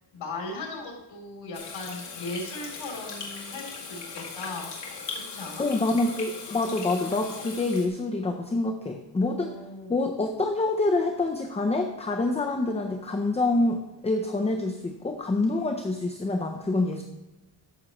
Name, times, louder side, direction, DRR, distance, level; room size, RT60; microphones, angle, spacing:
voice 1, 0.1-4.7 5.1-5.6 9.4-10.0, left 2 dB, 90° left, -1 dB, 3.3 m, -38 dB
Water tap faucet / Sink (filling or washing), 1.5-7.9, left 4 dB, 70° left, 2.1 m, -39 dB
voice 2, 5.6-9.5 9.9-17.0, left 2 dB, 15° left, 3 dB, 0.5 m, -26 dB
13.5 x 6.2 x 3.0 m, 1.0 s
wide cardioid pair, 150°, 44 cm